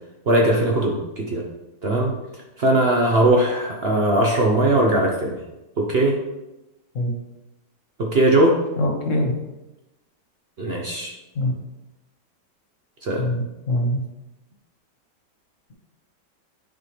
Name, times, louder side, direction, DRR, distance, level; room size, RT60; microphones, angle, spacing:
voice 1, 0.3-1.4 1.8-2.1 2.6-5.4 5.8-6.2 8.0-8.6 10.6-11.1 13.0-13.3, right 1 dB, 50° right, -1 dB, 0.8 m, -19 dB
voice 2, 8.8-9.4 11.3-11.6 13.2-14.0, left 1 dB, 50° left, 1 dB, 1.5 m, -23 dB
9.8 x 4.5 x 3.3 m, 0.97 s
omnidirectional pair, 1.9 m